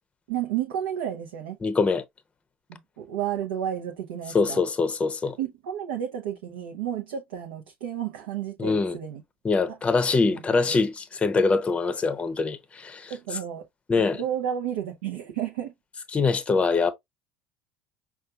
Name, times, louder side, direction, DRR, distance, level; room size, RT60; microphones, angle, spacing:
voice 1, 0.3-1.6 2.7-4.6 5.4-9.2 10.3-10.6 13.1-13.7 14.2-15.7, right 10 dB, 75° right, 0.8 m, -32 dB
voice 2, 1.6-2.0 4.3-5.4 8.6-9.0 9.4-13.1 13.9-14.2 16.1-16.9, left 4 dB, 20° left, 0.7 m, -24 dB
5.4 x 2.4 x 2.4 m
hypercardioid pair, 70°, 5 cm